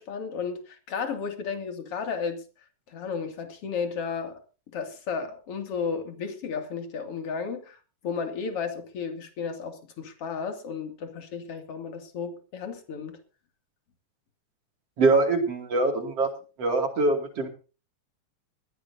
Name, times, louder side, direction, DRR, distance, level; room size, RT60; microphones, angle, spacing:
voice 1, 0.0-2.4 2.9-4.4 4.7-13.2, left 5 dB, 45° left, 3.3 m, -33 dB
voice 2, 15.0-16.3 16.6-17.5, right 3 dB, 50° right, 3.4 m, -23 dB
20.5 x 15.0 x 2.7 m
omnidirectional pair, 3.7 m